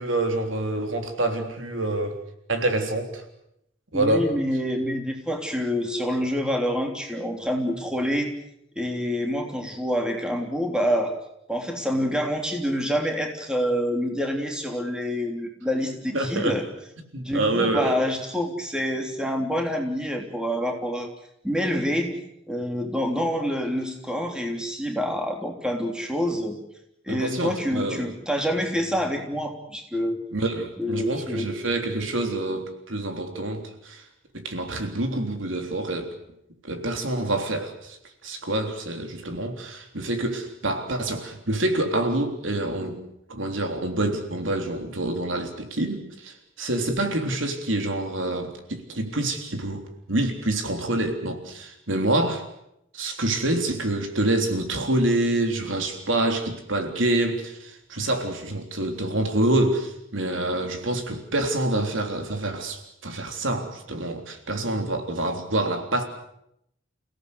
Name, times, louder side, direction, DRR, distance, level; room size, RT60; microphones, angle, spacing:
voice 1, 0.0-2.2 2.5-3.2 3.9-4.3 16.1-16.6 17.1-18.0 27.1-28.0 30.3-34.0 34.3-36.1 36.6-38.0 38.2-43.0 43.3-52.5 52.9-66.0, right 1 dB, 85° right, 5 dB, 3.6 m, -27 dB
voice 2, 3.9-8.3 8.7-11.1 11.5-16.6 17.2-21.1 21.4-22.1 22.5-26.6 27.0-30.2 30.8-31.5, equal, 5° right, 2 dB, 3.4 m, -27 dB
29.5 x 17.0 x 8.2 m, 0.79 s
head